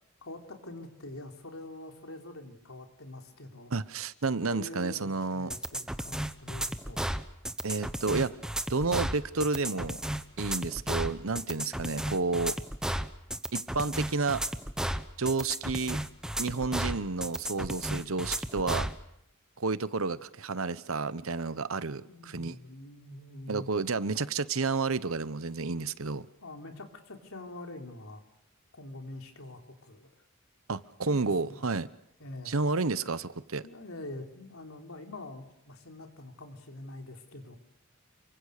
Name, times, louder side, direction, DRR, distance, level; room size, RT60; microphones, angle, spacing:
voice 1, 0.2-3.7 4.3-7.2 22.1-23.7 26.4-28.2 28.7-30.1 31.1-31.7 32.2-32.6 33.6-37.6, left 2 dB, 75° left, 3.7 m, -45 dB
voice 2, 3.7-5.5 7.6-8.3 8.7-10.0 10.4-12.5 13.5-14.4 15.2-16.0 16.4-18.9 19.6-22.6 23.5-26.3 30.7-31.9 32.5-33.6, right 4 dB, 75° right, 1.0 m, -31 dB
sound 1, 5.5-19.0, right 1 dB, 5° right, 0.9 m, -33 dB
29.5 x 24.0 x 6.6 m
head